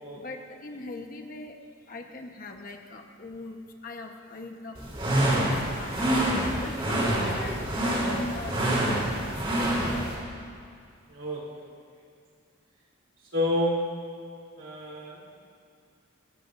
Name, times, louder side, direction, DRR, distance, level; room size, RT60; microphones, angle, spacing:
voice 1, 0.2-1.6 1.9-3.6 3.8-4.8 5.1-5.5 5.7-9.6, left 2 dB, 45° left, 3 dB, 1.2 m, -41 dB
sound 1, 4.8-10.1, right 1 dB, 25° right, 3.4 m, -26 dB
voice 2, 11.1-11.6 13.3-13.8 14.6-15.2, left 1 dB, 70° right, -4 dB, 3.3 m, -29 dB
27.0 x 13.5 x 2.7 m, 2.2 s
head